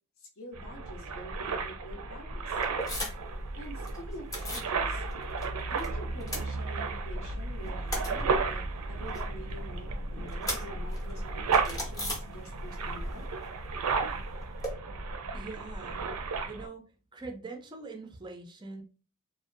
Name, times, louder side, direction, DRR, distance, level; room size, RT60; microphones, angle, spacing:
voice 1, 0.2-2.6 3.6-5.0 5.6-11.2 11.6-13.2, left 1 dB, 60° left, -1 dB, 0.6 m, -46 dB
sound 1, 0.5-16.7, right 4 dB, 80° right, 0.4 m, -33 dB
sound 2, 2.6-3.4 3.6-4.7 5.1-5.9 6.1-7.1 7.5-12.8 13.1-14.7, equal, 15° left, 0.6 m, -39 dB
voice 2, 15.3-16.1 16.5-16.8 17.1-18.8, right 3 dB, 20° right, 4 dB, 0.4 m, -43 dB
2.5 x 2.0 x 2.5 m, 0.35 s
head